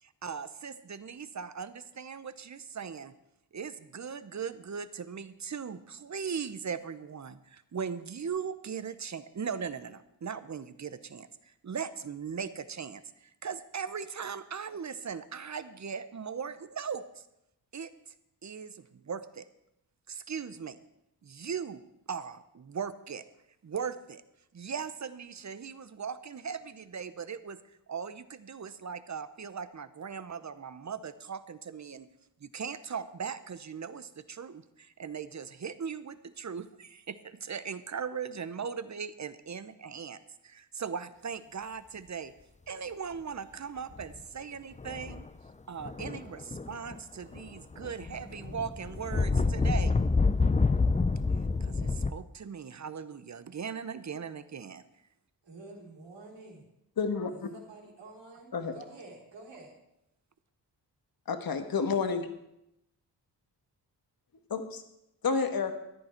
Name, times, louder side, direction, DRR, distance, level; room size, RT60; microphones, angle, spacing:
voice 1, 0.0-3.1 3.5-17.3 17.7-18.1 18.4-19.5 20.1-20.8 21.2-23.2 23.6-24.2 24.5-32.1 32.4-42.3 42.7-45.3 45.7-50.0 51.3-54.8, right 6 dB, 40° right, 13 dB, 0.8 m, -39 dB
sound 1, 43.9-44.2 44.8-45.3 45.8-47.0 47.3-52.1, left 3 dB, 15° left, 0.5 m, -28 dB
voice 2, 55.5-56.6 57.3-59.7, right 3 dB, 80° right, -4 dB, 4.0 m, -49 dB
voice 3, 57.0-57.3 58.5-58.8 61.3-62.3 64.5-64.8 65.2-65.7, left 5 dB, 55° left, 7 dB, 1.5 m, -29 dB
14.0 x 10.5 x 4.5 m, 0.84 s
cardioid pair, 65°, 42 cm